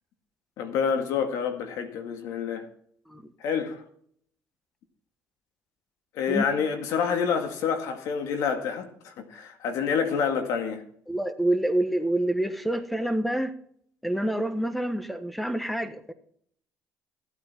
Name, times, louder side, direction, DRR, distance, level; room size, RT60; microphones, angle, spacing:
voice 1, 0.6-2.7 3.4-3.8 6.2-10.8, left 6 dB, 75° left, 1.9 m, -28 dB
voice 2, 11.1-13.5 14.0-16.1, right 1 dB, ahead, 1.3 m, -27 dB
15.0 x 8.9 x 4.4 m
supercardioid pair, 80°, 6 cm